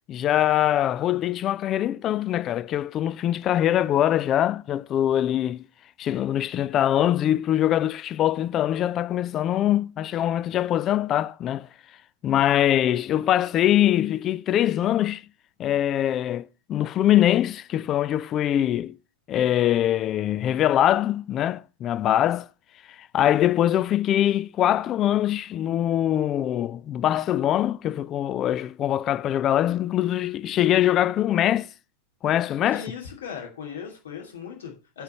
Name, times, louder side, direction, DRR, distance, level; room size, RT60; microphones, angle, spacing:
voice 1, 0.1-5.6 6.0-11.7 12.2-15.2 15.6-19.0 19.3-22.5 23.1-31.7 32.2-32.8, left 12 dB, 30° left, 0.3 m, -23 dB
voice 2, 32.7-35.0, left 7 dB, 65° left, 2.5 m, -38 dB
8.1 x 4.1 x 6.7 m
figure-of-eight pair, 90°, 0 cm